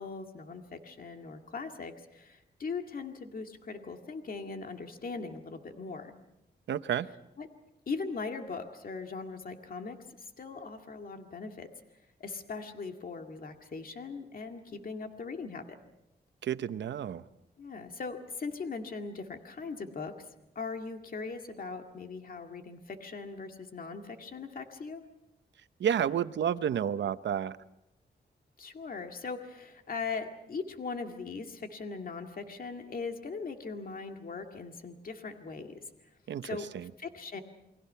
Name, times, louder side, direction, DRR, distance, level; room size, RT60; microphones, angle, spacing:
voice 1, 0.0-6.1 7.4-7.5 7.9-11.7 12.2-15.6 17.6-20.1 20.6-25.0 28.6-35.8 36.4-36.7 37.0-37.4, left 4 dB, 55° left, 5 dB, 2.1 m, -40 dB
voice 2, 6.7-7.1 16.4-17.2 25.8-27.6 36.3-36.5 36.7-36.9, right 9 dB, 90° right, 13 dB, 0.8 m, -30 dB
29.0 x 22.0 x 5.7 m, 0.87 s
wide cardioid pair, 100°, 18 cm